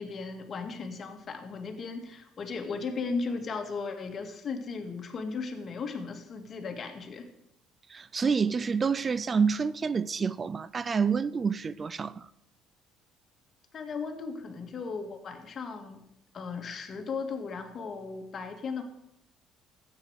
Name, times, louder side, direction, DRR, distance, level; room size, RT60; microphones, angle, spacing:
voice 1, 0.0-7.3 13.7-16.0 16.3-18.8, left 4 dB, 45° left, 2.1 m, -36 dB
voice 2, 7.9-12.3, right 5 dB, 35° right, 0.4 m, -28 dB
13.0 x 9.0 x 6.5 m
supercardioid pair, 85°, 0 cm